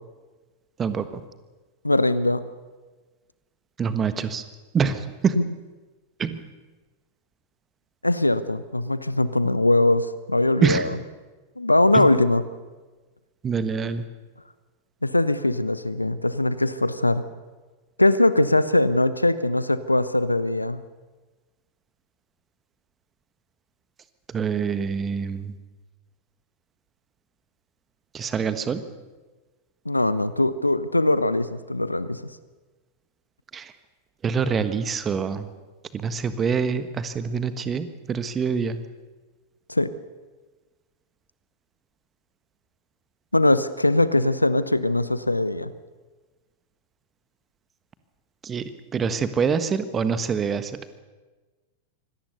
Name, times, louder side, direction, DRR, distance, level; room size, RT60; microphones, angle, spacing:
voice 1, 1.8-2.4 5.4-5.5 8.0-11.0 11.6-12.4 15.0-17.2 18.0-20.8 29.8-32.2 39.7-39.9 43.3-45.7, left 2 dB, 85° left, 15 dB, 0.8 m, -21 dB
voice 2, 3.8-4.4 4.7-5.3 6.2-6.4 10.6-10.8 11.9-12.1 13.4-14.0 24.3-25.5 28.1-28.8 33.5-33.7 34.2-35.5 35.9-38.8 48.4-50.7, right 6 dB, 20° right, 12 dB, 1.4 m, -25 dB
24.5 x 18.0 x 6.8 m, 1.3 s
figure-of-eight pair, 90°, 0 cm